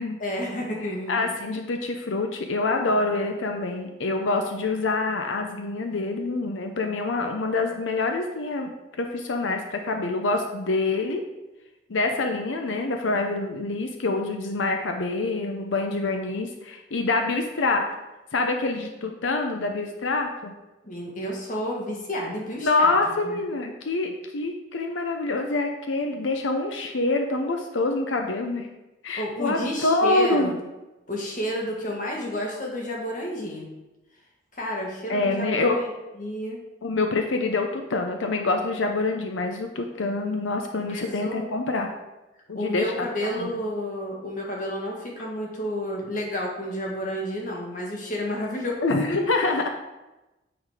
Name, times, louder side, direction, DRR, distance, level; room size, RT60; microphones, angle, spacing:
voice 1, 0.2-1.3 20.8-23.0 23.2-23.4 29.2-30.5 31.1-33.7 34.5-35.9 36.2-36.6 40.9-41.5 42.6-48.8 49.1-49.2, equal, 45° left, -1 dB, 1.6 m, -31 dB
voice 2, 1.1-8.7 9.0-11.2 11.9-17.8 18.3-20.5 22.6-28.7 29.0-30.6 35.1-35.8 36.8-41.9 42.5-43.1 43.4-43.6 48.8-49.7, left 3 dB, 90° left, 4 dB, 0.7 m, -26 dB
9.3 x 4.0 x 4.9 m, 1.0 s
head